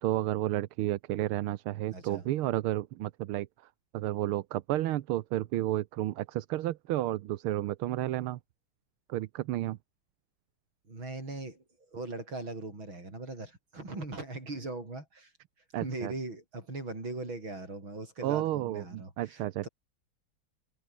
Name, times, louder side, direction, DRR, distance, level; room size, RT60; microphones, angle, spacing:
voice 1, 0.0-3.5 3.9-8.4 9.1-9.8 15.7-16.1 18.2-19.7, right 14 dB, 85° right, 1.7 m, -31 dB
voice 2, 1.9-2.2 10.9-11.6 11.9-15.3 15.8-19.7, right 2 dB, 70° right, 8.3 m, -40 dB
omnidirectional pair, 2.3 m